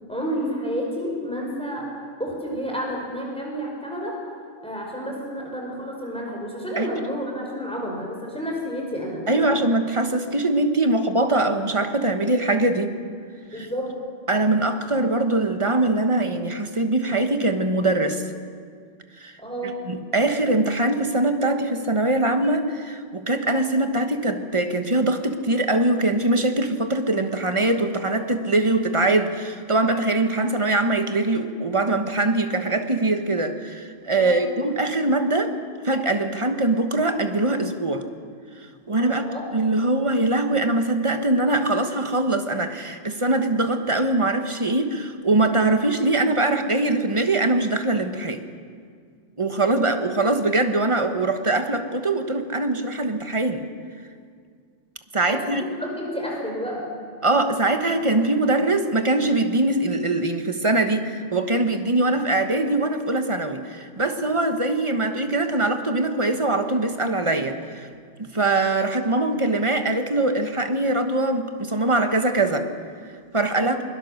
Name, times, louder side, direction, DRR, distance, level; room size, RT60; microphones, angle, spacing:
voice 1, 0.1-1.9 2.2-4.2 4.6-9.6 13.5-13.9 19.4-19.8 34.1-34.4 38.9-39.4 55.3-56.9 73.5-73.8, equal, 5° left, -1 dB, 5.0 m, -30 dB
voice 2, 9.3-12.9 14.3-18.2 19.2-19.3 19.9-35.5 35.8-38.1 38.9-39.2 39.5-48.4 49.4-53.6 55.1-55.6 57.2-67.9 68.2-72.7 73.3-73.8, right 2 dB, 25° right, 7 dB, 1.3 m, -22 dB
21.5 x 21.0 x 6.6 m, 2.1 s
omnidirectional pair, 1.2 m